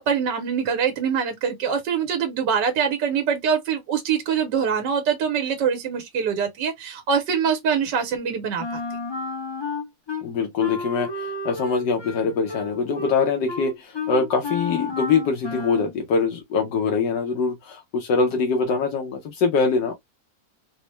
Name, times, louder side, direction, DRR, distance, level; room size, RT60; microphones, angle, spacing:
voice 1, 0.0-8.8, right 7 dB, 85° right, 1.5 m, -24 dB
Wind instrument woodwind instrument, 8.6-10.2 10.6-15.9, left 3 dB, 25° left, 0.5 m, -32 dB
voice 2, 10.2-20.0, left 5 dB, 80° left, 1.4 m, -23 dB
4.0 x 2.1 x 3.1 m
omnidirectional pair, 1.8 m